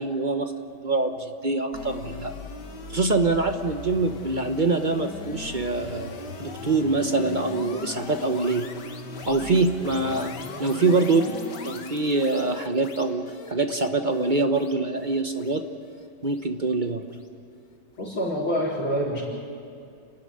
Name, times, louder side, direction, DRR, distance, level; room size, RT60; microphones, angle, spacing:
voice 1, 0.0-2.3 2.9-8.7 9.3-10.3 10.6-11.3 11.6-13.2 13.5-15.6 16.2-17.0, right 3 dB, 40° right, 6 dB, 0.7 m, -24 dB
sound 1, 1.7-16.9, left 4 dB, 55° left, 2.0 m, -39 dB
voice 2, 18.0-19.2, equal, 90° left, -9 dB, 4.9 m, -26 dB
29.5 x 13.0 x 9.9 m, 2.4 s
omnidirectional pair, 2.2 m